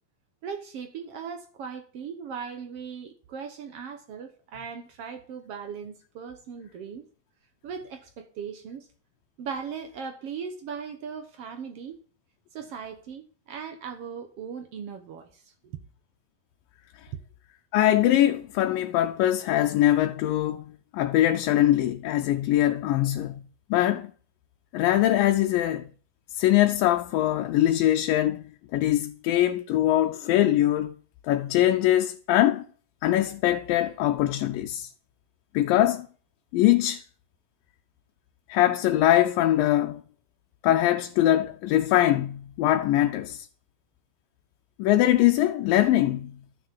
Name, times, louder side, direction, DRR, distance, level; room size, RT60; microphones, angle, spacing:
voice 1, 0.4-7.1 7.6-8.9 9.4-12.0 12.5-15.8, right 6 dB, 65° right, 1.5 m, -38 dB
voice 2, 17.7-23.4 23.7-24.1 24.7-25.8 26.3-30.9 31.2-32.6 33.0-34.9 35.5-36.1 36.5-37.0 38.5-40.0 40.6-43.5 44.8-46.4, left 13 dB, 85° left, 2.3 m, -22 dB
12.0 x 6.2 x 7.2 m
omnidirectional pair, 4.0 m